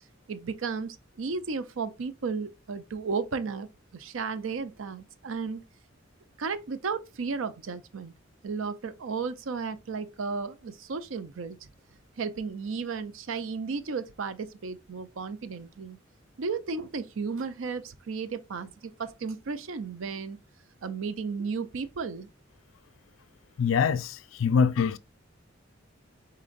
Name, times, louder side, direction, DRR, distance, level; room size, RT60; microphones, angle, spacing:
voice 1, 0.3-5.6 6.4-8.1 8.4-11.7 12.2-16.0 16.4-20.4 20.8-22.3, right 5 dB, 80° right, 0.5 m, -34 dB
voice 2, 23.6-25.0, left 6 dB, 85° left, 0.4 m, -24 dB
4.1 x 3.8 x 2.5 m
head